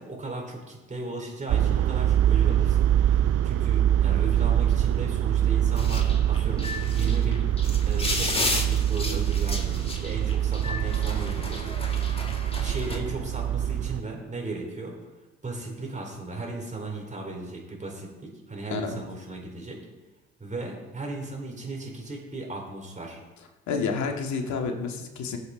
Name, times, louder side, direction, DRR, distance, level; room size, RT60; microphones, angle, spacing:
voice 1, 0.0-7.4 7.9-11.8 12.6-14.9 15.4-19.8 20.4-23.2, right 2 dB, 20° right, 0 dB, 4.7 m, -36 dB
sound 1, 1.5-14.0, right 11 dB, 45° right, 0.6 m, -24 dB
sound 2, 5.8-13.0, left 2 dB, 15° left, 2.2 m, -33 dB
voice 2, 23.7-25.4, left 5 dB, 55° left, 3 dB, 2.2 m, -29 dB
17.0 x 7.9 x 4.0 m, 1.2 s
hypercardioid pair, 55°, 33 cm